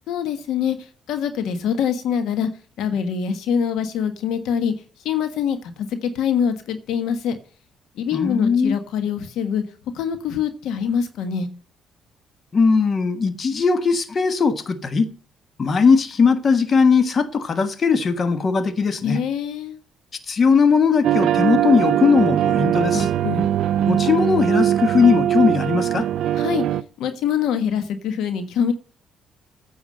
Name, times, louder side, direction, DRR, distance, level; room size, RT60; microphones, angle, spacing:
voice 1, 0.1-2.5 2.8-4.7 5.0-7.4 8.0-9.6 9.9-11.5 19.0-19.8 22.9-23.5 26.4-26.6 27.0-28.7, left 7 dB, 80° left, 1.3 m, -24 dB
voice 2, 8.1-8.7 12.5-15.1 15.6-19.2 20.3-23.1 23.9-26.1, left 5 dB, 45° left, 1.3 m, -19 dB
sound 1, 21.0-26.8, right 11 dB, 75° right, 0.5 m, -21 dB
9.4 x 7.1 x 7.6 m
cardioid pair, 90°, 0 cm